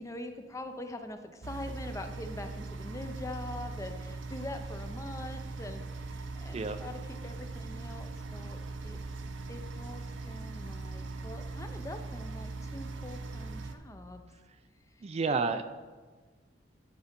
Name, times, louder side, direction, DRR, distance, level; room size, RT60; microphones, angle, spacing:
voice 1, 0.0-9.0 9.5-14.3 14.9-15.2 15.4-15.6, left 1 dB, 15° left, 7 dB, 0.5 m, -44 dB
sound 1, 1.4-13.8, right 3 dB, 80° right, 0.6 m, -40 dB
voice 2, 15.0-15.6, right 4 dB, 35° right, 9 dB, 0.4 m, -30 dB
10.5 x 4.1 x 5.2 m, 1.4 s
head